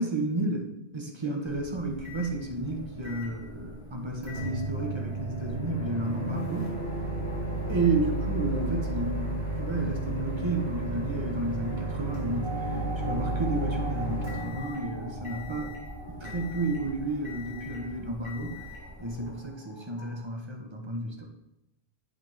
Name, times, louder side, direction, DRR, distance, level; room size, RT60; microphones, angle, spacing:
voice 1, 0.0-6.8 7.7-15.7 16.1-18.6 19.0-21.3, right 2 dB, 25° right, 2 dB, 1.1 m, -32 dB
Microwave oven, 1.4-19.4, right 2 dB, 75° left, 2.4 m, -34 dB
sound 1, 2.6-20.2, right 1 dB, 55° left, 2.5 m, -43 dB
10.5 x 3.5 x 4.7 m, 0.88 s
omnidirectional pair, 1.1 m